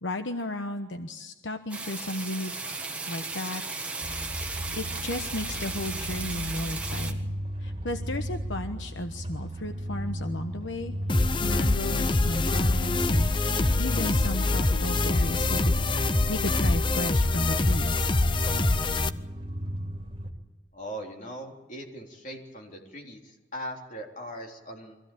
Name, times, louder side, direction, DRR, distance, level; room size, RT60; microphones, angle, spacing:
voice 1, 0.0-2.5 3.1-3.6 3.9-4.4 4.7-11.0 11.4-15.8 16.3-18.1, left 1 dB, 80° left, 7 dB, 1.1 m, -34 dB
sound 1, 1.7-7.1, right 3 dB, 5° right, 1.6 m, -35 dB
sound 2, 4.0-20.3, equal, 30° right, 2.6 m, -35 dB
sound 3, 11.1-19.1, left 2 dB, 25° left, 0.7 m, -25 dB
voice 2, 20.7-25.0, equal, 40° left, 1 dB, 3.6 m, -40 dB
24.5 x 16.0 x 8.7 m, 1.2 s
head